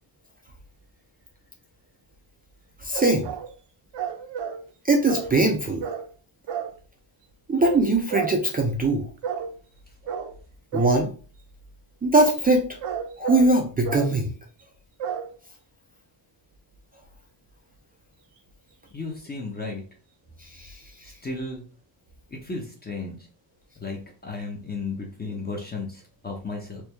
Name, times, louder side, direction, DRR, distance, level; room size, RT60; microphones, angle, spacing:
voice 1, 2.8-3.3 4.8-5.8 7.5-9.1 10.7-11.1 12.0-12.6 13.2-14.3 20.5-20.8, right 2 dB, 20° right, 2 dB, 0.4 m, -21 dB
sound 1, 2.9-3.5 3.9-4.6 5.0-5.4 5.8-6.1 6.5-6.7 7.6-7.8 8.1-8.4 9.2-9.5 10.1-10.4 10.7-11.0 12.6-13.5 13.8-14.1 15.0-15.3, right 7 dB, 60° right, 0.6 m, -31 dB
voice 2, 18.9-19.8 21.0-21.6 22.3-23.2 23.8-26.8, left 3 dB, 20° left, 0 dB, 0.7 m, -34 dB
4.5 x 2.3 x 3.2 m, 0.38 s
wide cardioid pair, 160°, 48 cm